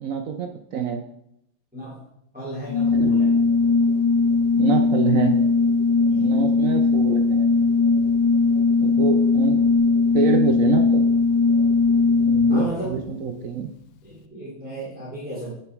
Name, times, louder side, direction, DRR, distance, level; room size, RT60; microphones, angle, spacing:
voice 1, 0.0-1.0 2.9-3.1 4.6-5.3 6.2-7.5 8.8-9.7 10.1-11.0 12.3-13.7, right 6 dB, 75° right, 5 dB, 0.7 m, -26 dB
voice 2, 2.3-3.4 6.1-6.4 12.5-13.0 14.0-15.6, right 1 dB, 5° right, -7 dB, 3.0 m, -34 dB
Organ, 2.7-12.9, left 4 dB, 75° left, 1.4 m, -19 dB
8.2 x 7.0 x 4.6 m, 0.76 s
omnidirectional pair, 2.2 m